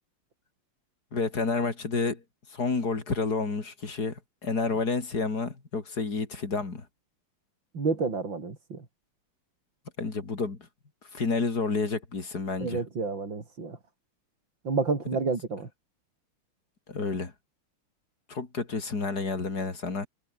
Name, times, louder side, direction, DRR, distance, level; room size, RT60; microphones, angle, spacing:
voice 1, 1.1-2.2 2.5-6.8 10.0-10.6 11.1-12.8 16.9-17.3 18.3-20.1, left 4 dB, 45° left, 3.6 m, -30 dB
voice 2, 7.7-8.8 12.6-13.8 14.6-15.7, right 4 dB, 60° right, 4.5 m, -29 dB
omnidirectional pair, 2.4 m